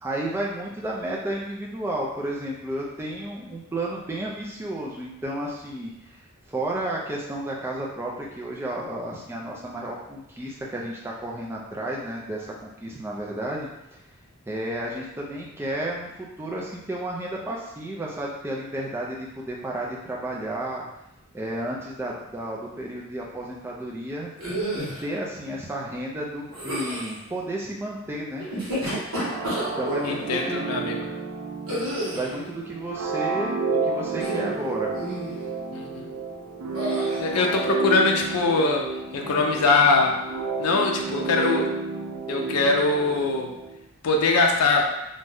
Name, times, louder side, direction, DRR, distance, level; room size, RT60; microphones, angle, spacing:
voice 1, 0.0-6.2 6.5-13.7 14.5-20.9 21.3-24.3 24.7-28.4 29.1-29.3 29.8-30.7 32.1-35.0, right 1 dB, 10° right, -3 dB, 0.3 m, -32 dB
sound 1, 24.4-25.0 26.5-27.2 28.4-30.1 31.7-32.4 34.1-34.6 35.0-35.4 36.7-37.2, equal, 65° right, 1.2 m, -30 dB
sound 2, 29.2-43.8, right 4 dB, 90° right, 0.4 m, -31 dB
voice 2, 30.0-31.0 35.7-36.1 37.2-38.9 39.1-40.2 40.6-41.7 42.3-43.5 44.0-44.8, left 3 dB, 90° left, 1 dB, 0.5 m, -22 dB
2.6 x 2.2 x 3.3 m, 0.87 s
head